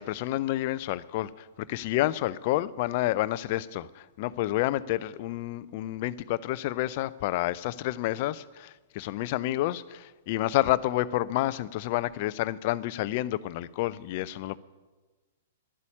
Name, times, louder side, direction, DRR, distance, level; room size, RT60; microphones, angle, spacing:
voice 1, 0.0-14.6, left 15 dB, 45° left, 0.5 m, -29 dB
11.5 x 8.3 x 9.9 m
figure-of-eight pair, 110°, 0 cm